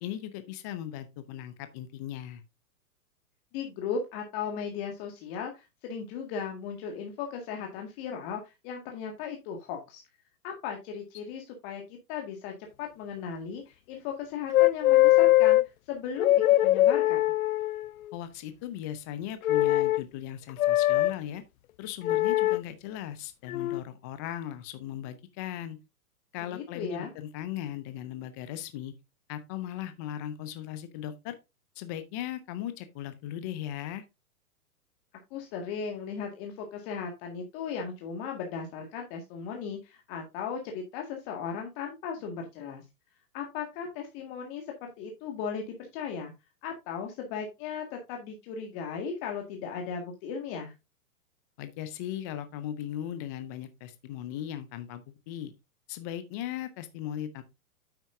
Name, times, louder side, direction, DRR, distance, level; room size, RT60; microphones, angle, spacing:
voice 1, 0.0-2.4 18.1-21.4 21.8-25.8 26.3-28.9 29.3-31.4 31.8-34.0 51.6-55.5 55.9-57.4, left 11 dB, 15° left, 0.3 m, -38 dB
voice 2, 3.5-10.0 10.4-11.8 12.1-15.6 15.9-17.3 26.5-27.1 35.3-42.8 43.3-46.3 46.6-50.7, left 6 dB, 40° left, 2.0 m, -37 dB
sound 1, 14.5-15.6 16.2-17.9 19.4-20.0 20.6-21.1 22.0-22.6 23.5-23.8, left 15 dB, 70° left, 0.5 m, -22 dB
9.3 x 7.9 x 2.6 m
hypercardioid pair, 115°, 45 cm